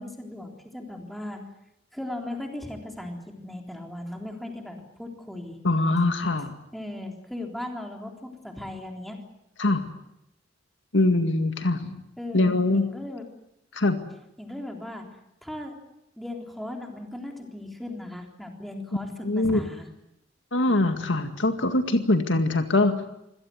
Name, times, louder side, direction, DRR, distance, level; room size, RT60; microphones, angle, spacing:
voice 1, 0.0-1.4 1.9-5.6 6.7-9.2 12.2-13.3 14.4-15.1 15.4-15.8 16.2-19.9, left 1 dB, ahead, 2 dB, 3.8 m, -37 dB
voice 2, 5.6-6.5 9.6-9.8 10.9-12.0 12.3-12.9 13.7-14.0 19.2-19.6 20.5-23.0, left 2 dB, 70° left, 7 dB, 2.1 m, -23 dB
26.5 x 17.0 x 9.4 m, 0.83 s
head